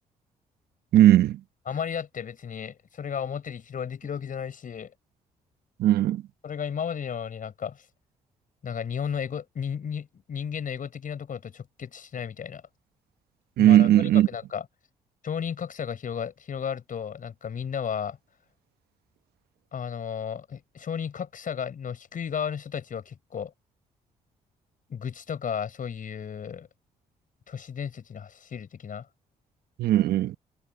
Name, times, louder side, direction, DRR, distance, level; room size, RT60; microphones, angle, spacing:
voice 1, 0.9-1.4 5.8-6.2 13.6-14.3 29.8-30.4, right 13 dB, 75° right, 1.0 m, -18 dB
voice 2, 1.7-4.9 6.4-7.8 8.6-12.6 13.6-14.6 15.2-18.2 19.7-23.5 24.9-26.7 27.5-29.1, left 7 dB, 55° left, 5.6 m, -34 dB
supercardioid pair, 55°, 16 cm